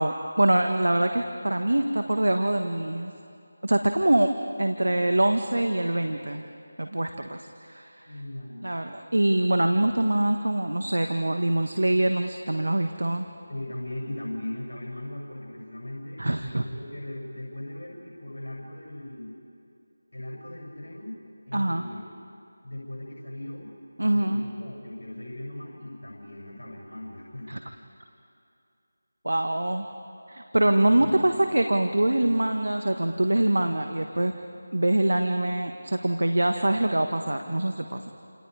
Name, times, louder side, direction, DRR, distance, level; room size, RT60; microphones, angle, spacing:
voice 1, 0.0-3.1 3.6-4.3 4.6-6.4 6.8-8.1 8.6-13.3 16.2-16.6 21.5-21.9 24.0-24.5 27.5-27.6 29.2-29.9 30.3-34.3 34.7-38.0, right 1 dB, 75° right, 6 dB, 1.4 m, -24 dB
voice 2, 8.1-8.7 13.5-19.3 20.1-21.2 21.5-22.0 22.6-23.7 24.0-27.5 31.0-31.1, left 1 dB, 70° left, -2 dB, 7.3 m, -38 dB
29.5 x 28.0 x 4.9 m, 2.6 s
figure-of-eight pair, 165°, 0 cm